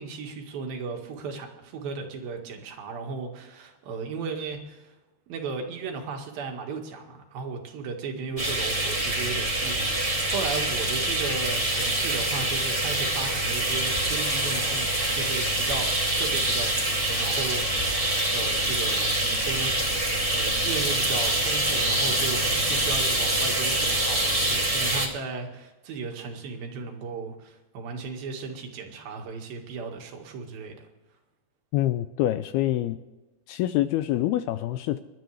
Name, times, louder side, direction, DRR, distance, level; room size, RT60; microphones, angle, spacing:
voice 1, 0.0-4.9 5.3-18.0 18.3-30.9, right 4 dB, 65° right, 2 dB, 3.5 m, -36 dB
sound 1, 8.4-25.1, right 1 dB, 20° right, 0.9 m, -25 dB
voice 2, 31.7-33.0 33.5-35.0, left 14 dB, 80° left, 11 dB, 2.3 m, -26 dB
26.0 x 12.0 x 3.4 m, 1.1 s
omnidirectional pair, 4.9 m